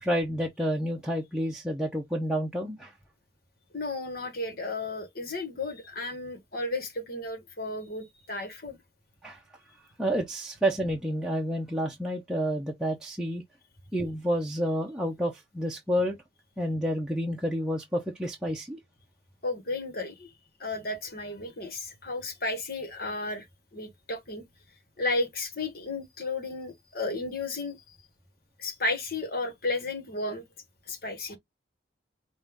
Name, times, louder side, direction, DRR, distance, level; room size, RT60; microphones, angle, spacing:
voice 1, 0.0-2.9 9.2-9.4 10.0-13.4 13.9-16.2 16.6-18.8, equal, 5° right, 0.8 m, -29 dB
voice 2, 3.7-8.8 19.4-20.3 20.6-23.5 23.7-24.5 25.0-28.0 28.6-30.5 30.9-31.4, left 2 dB, 55° left, 1.6 m, -33 dB
5.4 x 2.6 x 3.6 m
head